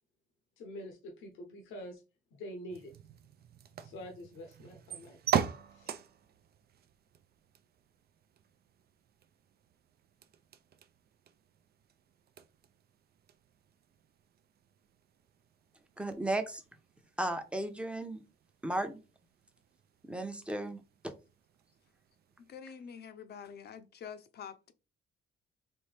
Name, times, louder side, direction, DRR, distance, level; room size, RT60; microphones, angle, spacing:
voice 1, 0.6-2.0 2.3-2.9 3.8-5.3 5.7-6.0, equal, 85° left, 0.9 m, -46 dB
sound 1, 2.7-22.6, right 8 dB, 50° right, 0.5 m, -43 dB
voice 2, 16.0-16.6 17.2-18.2 18.6-19.0 20.0-21.1, right 1 dB, 5° right, 0.7 m, -35 dB
voice 3, 22.5-24.7, left 7 dB, 55° left, 0.6 m, -47 dB
4.3 x 2.7 x 3.4 m
cardioid pair, 90°, 20 cm